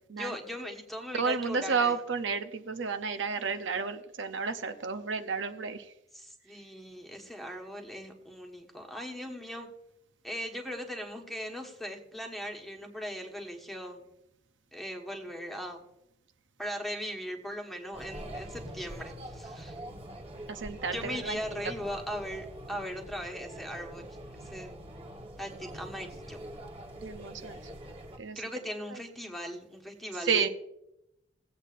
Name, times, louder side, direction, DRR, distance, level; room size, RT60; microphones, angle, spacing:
voice 1, 0.1-2.0 6.1-9.7 10.2-14.1 14.7-15.8 16.6-19.8 20.9-24.2 24.4-24.7 25.4-26.4 28.4-30.5, equal, ahead, 2 dB, 1.3 m, -39 dB
voice 2, 1.1-5.9 20.5-21.4 27.0-27.6 28.2-28.4 30.3-30.5, right 5 dB, 70° right, 8 dB, 0.7 m, -31 dB
sound 1, 17.9-28.2, right 1 dB, 30° right, 1.1 m, -44 dB
18.5 x 8.2 x 2.5 m, 0.85 s
head